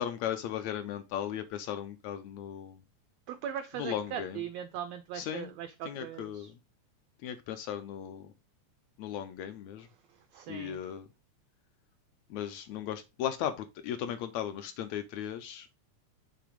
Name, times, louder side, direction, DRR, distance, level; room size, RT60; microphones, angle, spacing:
voice 1, 0.0-2.8 3.8-4.4 5.1-5.5 5.8-6.5 7.2-8.3 9.0-9.9 10.5-11.1 12.3-15.7, left 10 dB, 80° left, 1.7 m, -36 dB
voice 2, 3.3-6.5 10.3-10.8, right 9 dB, 85° right, 1.4 m, -39 dB
6.7 x 3.4 x 5.0 m
omnidirectional pair, 3.5 m